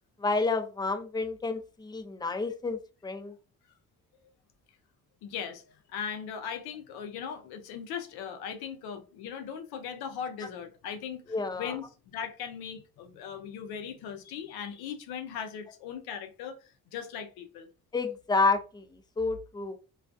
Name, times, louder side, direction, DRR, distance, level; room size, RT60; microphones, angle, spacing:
voice 1, 0.2-3.3 11.3-11.7 17.9-18.8 19.2-19.8, left 3 dB, 10° left, 0.5 m, -29 dB
voice 2, 5.2-11.2 11.5-17.7, left 7 dB, 90° left, 0.6 m, -39 dB
2.3 x 2.2 x 2.5 m
supercardioid pair, 60°, 36 cm